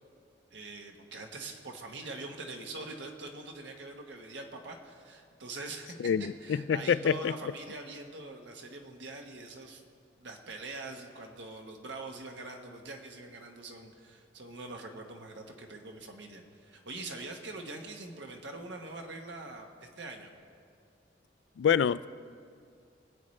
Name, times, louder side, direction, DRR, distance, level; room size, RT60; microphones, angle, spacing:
voice 1, 0.5-9.8 10.2-20.3, right 2 dB, 80° right, 3 dB, 1.3 m, -43 dB
voice 2, 6.0-7.3 21.6-22.1, left 7 dB, 75° left, 17 dB, 0.3 m, -27 dB
23.0 x 8.6 x 3.2 m, 2.3 s
head